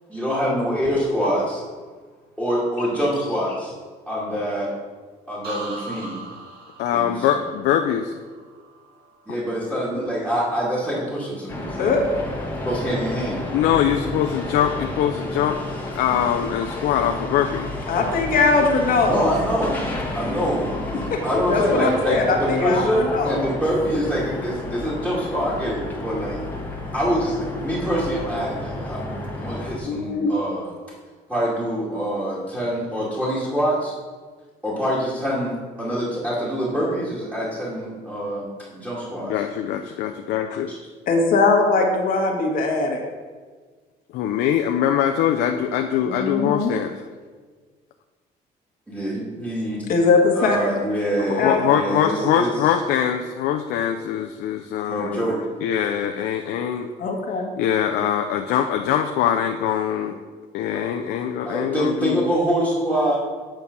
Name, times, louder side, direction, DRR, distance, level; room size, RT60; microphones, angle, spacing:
voice 1, 0.1-1.6 2.4-3.7 4.1-4.7 5.3-6.2 6.9-7.4 9.3-12.0 12.6-13.4 19.0-19.9 20.1-20.7 21.2-26.4 26.9-30.7 31.3-33.9 34.6-39.3 40.7-40.8 48.9-49.9 50.4-52.5 54.9-55.4 60.7-60.8 61.4-63.2, equal, 10° right, -8 dB, 2.3 m, -25 dB
sound 1, 5.4-9.2 9.6-10.1, right 2 dB, 65° right, 2.2 m, -39 dB
voice 2, 6.8-8.1 13.5-15.6 15.9-17.7 39.2-40.7 44.1-47.0 51.4-55.3 55.6-56.9 57.6-60.2 60.5-62.3, left 9 dB, 80° left, 4 dB, 0.5 m, -23 dB
sound 2, 11.5-29.8, left 2 dB, 10° left, 1.4 m, -31 dB
voice 3, 17.9-19.2 21.1-21.2 21.5-23.4 29.8-30.3 41.1-43.0 46.1-46.7 49.9-50.8 51.4-51.6 57.0-57.5, left 3 dB, 60° left, 1 dB, 1.5 m, -20 dB
8.8 x 4.5 x 5.3 m, 1.5 s
cardioid pair, 110°, 17 cm